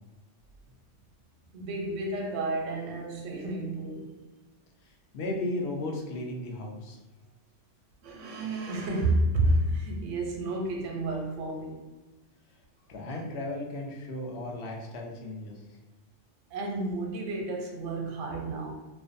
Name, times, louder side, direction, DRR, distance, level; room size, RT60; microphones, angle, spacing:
voice 1, 1.5-4.1 8.0-11.8 13.0-13.2 16.5-18.7, right 1 dB, 80° right, 0.9 m, -30 dB
voice 2, 4.8-7.0 12.9-15.8, left 2 dB, 65° left, 0.8 m, -35 dB
2.5 x 2.2 x 2.5 m
omnidirectional pair, 1.2 m